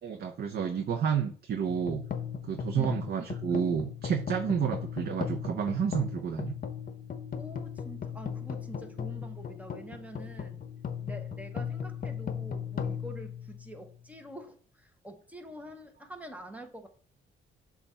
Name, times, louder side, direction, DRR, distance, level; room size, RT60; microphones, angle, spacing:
voice 1, 0.0-2.0 2.4-6.5, right 7 dB, 55° right, 5 dB, 0.7 m, -30 dB
sound 1, 1.7-14.1, left 7 dB, 45° left, 0.8 m, -37 dB
voice 2, 2.7-3.1 4.6-4.7 7.4-10.6 11.0-16.9, right 1 dB, 5° right, 5 dB, 1.0 m, -46 dB
6.8 x 2.5 x 5.5 m, 0.44 s
cardioid pair, 90°, 20 cm